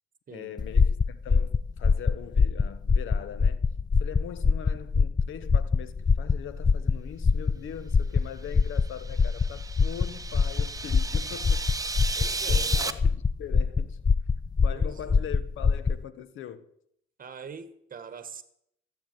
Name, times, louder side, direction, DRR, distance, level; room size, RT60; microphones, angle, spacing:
voice 1, 0.3-3.6 4.0-11.7 12.1-14.0 14.6-16.6, left 9 dB, 80° left, 1.2 m, -41 dB
sound 1, 0.6-16.0, left 5 dB, 20° left, 0.4 m, -24 dB
sound 2, 8.7-12.9, right 3 dB, 15° right, 1.1 m, -34 dB
voice 2, 12.1-12.8 14.7-15.3 17.2-18.4, right 6 dB, 45° right, 1.7 m, -43 dB
14.5 x 8.5 x 9.1 m
cardioid pair, 90°, 20 cm